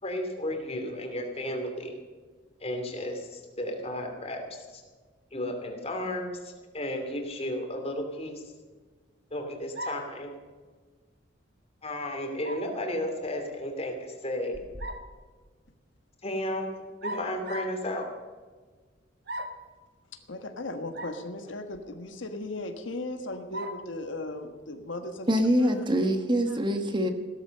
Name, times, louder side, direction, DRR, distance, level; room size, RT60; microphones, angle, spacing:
voice 1, 0.0-2.0 2.6-4.8 5.3-8.4 9.3-10.3 11.8-14.6 16.2-16.7 17.0-18.1, left 1 dB, 35° left, 4 dB, 2.8 m, -33 dB
sound 1, 9.7-10.2 12.4-12.7 14.5-15.1 17.0-17.8 19.3-19.7 20.9-21.2 21.7-21.8 23.5-23.9, right 1 dB, 60° right, 1.3 m, -37 dB
voice 2, 20.3-25.8 26.5-26.6, left 2 dB, 75° left, 6 dB, 1.4 m, -37 dB
voice 3, 25.3-27.1, equal, 25° right, 6 dB, 1.3 m, -24 dB
16.0 x 13.0 x 6.7 m, 1.4 s
head